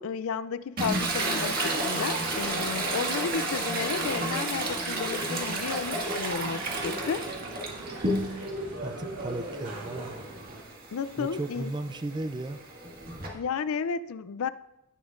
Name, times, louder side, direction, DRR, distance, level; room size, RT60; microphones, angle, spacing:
voice 1, 0.0-7.3 10.9-11.7 13.3-14.5, left 6 dB, 70° left, 15 dB, 0.4 m, -33 dB
Toilet flush, 0.8-8.6 9.0-13.3, right 2 dB, 45° right, 1.8 m, -31 dB
sound 1, 4.8-10.6, right 1 dB, 70° right, 2.5 m, -40 dB
voice 2, 8.8-10.3 11.2-12.6, right 2 dB, 20° right, 11 dB, 0.4 m, -35 dB
16.5 x 7.1 x 2.5 m, 0.88 s
head